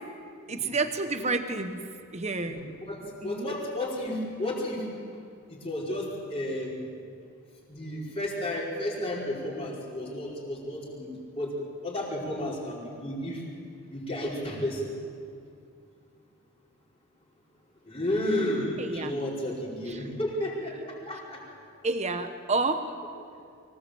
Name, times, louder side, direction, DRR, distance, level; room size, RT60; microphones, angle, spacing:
voice 1, 0.5-2.6 3.2-3.5 18.8-19.1 19.9-20.1 21.8-22.9, right 3 dB, 30° right, 8 dB, 1.1 m, -30 dB
voice 2, 2.9-4.9 5.5-6.8 7.7-11.1 11.3-11.5 11.8-13.4 13.9-14.9 17.8-21.4, left 1 dB, 25° left, -4 dB, 4.9 m, -32 dB
24.5 x 17.5 x 7.8 m, 2.3 s
head